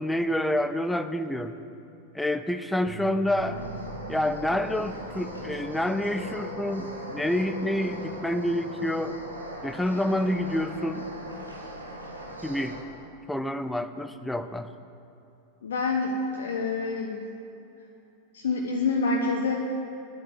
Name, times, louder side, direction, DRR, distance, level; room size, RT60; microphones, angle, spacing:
voice 1, 0.0-1.5 2.1-3.6 4.1-9.2 9.6-11.1 12.4-12.8 13.3-14.7, left 1 dB, 5° left, 10 dB, 0.6 m, -28 dB
sound 1, 2.9-9.1, right 5 dB, 20° right, 1.6 m, -48 dB
sound 2, 3.3-12.8, equal, 80° right, 1.7 m, -39 dB
voice 2, 15.6-17.3 18.3-19.6, left 3 dB, 65° left, -1 dB, 1.1 m, -27 dB
10.0 x 8.7 x 8.8 m, 2.8 s
figure-of-eight pair, 90°, 0 cm